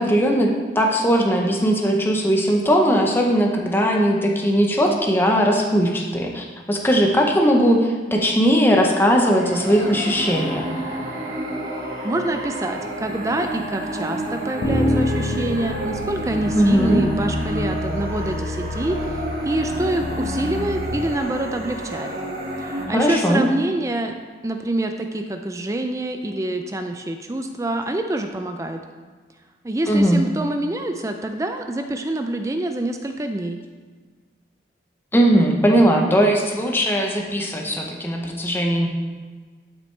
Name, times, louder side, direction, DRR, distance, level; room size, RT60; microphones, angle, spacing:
voice 1, 0.0-10.7 16.5-17.0 22.9-23.4 29.9-30.2 35.1-38.9, equal, 10° left, 0 dB, 0.7 m, -19 dB
sound 1, 9.2-22.8, right 1 dB, 50° right, 1.6 m, -30 dB
voice 2, 12.0-22.1 22.6-24.1 24.4-28.8 29.6-33.6, right 1 dB, 15° right, 6 dB, 0.4 m, -26 dB
sound 2, 14.6-20.9, left 1 dB, 75° left, 1.7 m, -28 dB
12.0 x 6.1 x 3.2 m, 1.4 s
head